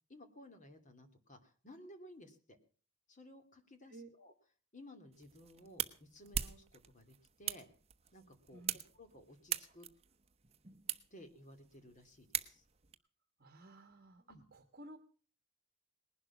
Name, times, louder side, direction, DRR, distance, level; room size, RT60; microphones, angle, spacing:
voice 1, 0.1-2.6 3.1-4.3 4.7-7.7 8.1-9.9 11.1-12.6 14.3-14.4, left 1 dB, 35° left, 7 dB, 2.6 m, -57 dB
sound 1, 5.1-12.9, right 9 dB, 30° right, 1.0 m, -43 dB
voice 2, 13.4-15.0, right 2 dB, 45° right, 5 dB, 1.4 m, -55 dB
20.0 x 11.5 x 6.0 m, 0.43 s
head